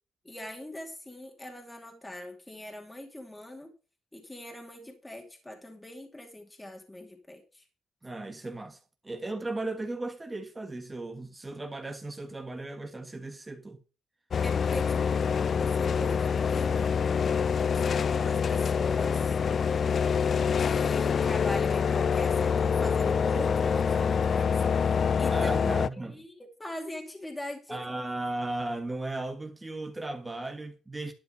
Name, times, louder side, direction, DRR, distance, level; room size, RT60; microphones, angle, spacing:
voice 1, 0.2-3.7 4.1-7.7 14.4-15.3 15.6-17.0 17.7-19.4 20.6-25.6 25.9-27.9, left 1 dB, 10° left, 2.5 m, -42 dB
voice 2, 8.0-8.8 9.0-13.8 25.3-26.1 27.7-31.1, right 2 dB, 15° right, 1.5 m, -36 dB
sound 1, 14.3-25.9, left 6 dB, 50° left, 0.4 m, -26 dB
11.5 x 5.7 x 6.6 m
cardioid pair, 90°, 0 cm